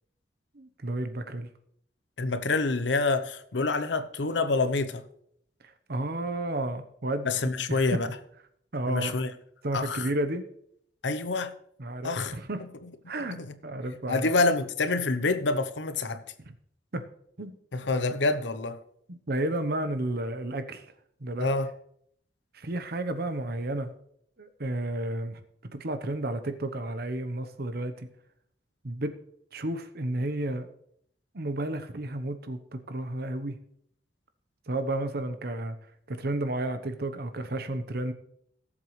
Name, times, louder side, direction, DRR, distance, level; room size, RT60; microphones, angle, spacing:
voice 1, 0.5-1.5 5.9-7.4 7.7-7.9 8.7-9.2 9.6-10.4 11.8-12.6 13.1-13.4 13.6-14.3 16.4-16.5 16.9-17.0 17.4-17.5 19.1-20.8 21.2-21.5 22.5-23.9 24.4-25.4 25.7-28.1 28.8-29.1 29.5-30.7 31.3-33.6 34.7-35.8 36.1-38.1, right 1 dB, 60° right, 1.0 m, -32 dB
voice 2, 2.2-5.1 7.2-8.1 8.9-9.3 9.7-10.1 11.0-11.5 12.0-12.7 13.3-13.5 14.1-16.2 17.7-18.8 21.4-21.7, left 3 dB, 90° left, 0.9 m, -27 dB
17.5 x 7.5 x 3.2 m
head